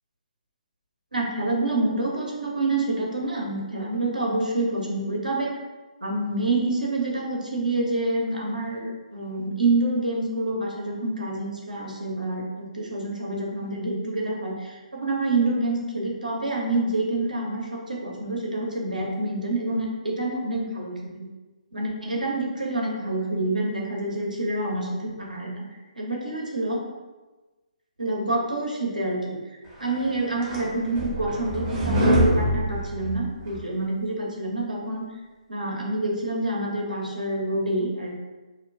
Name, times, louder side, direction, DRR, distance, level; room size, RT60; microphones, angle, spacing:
voice 1, 1.1-5.5 6.0-21.3 21.7-25.6 26.0-26.8 28.0-29.4 29.8-35.0 35.5-38.1, right 2 dB, 85° right, -1 dB, 0.8 m, -27 dB
sound 1, 30.0-33.6, equal, 25° right, 0.7 m, -24 dB
2.8 x 2.2 x 3.9 m, 1.2 s
figure-of-eight pair, 140°, 4 cm